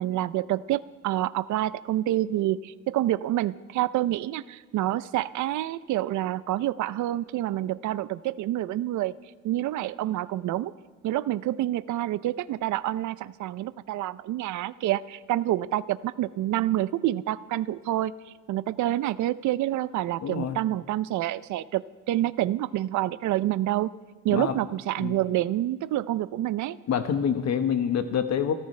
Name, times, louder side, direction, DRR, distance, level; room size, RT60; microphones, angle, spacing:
voice 1, 0.0-9.1 9.4-10.7 11.0-18.1 18.5-23.9 24.2-26.8, right 14 dB, 75° right, 15 dB, 0.6 m, -27 dB
voice 2, 20.2-20.6 24.3-24.6 25.0-25.2 26.9-28.5, left 8 dB, 60° left, 8 dB, 1.3 m, -26 dB
29.5 x 14.0 x 3.3 m, 1.4 s
cardioid pair, 90°, 30 cm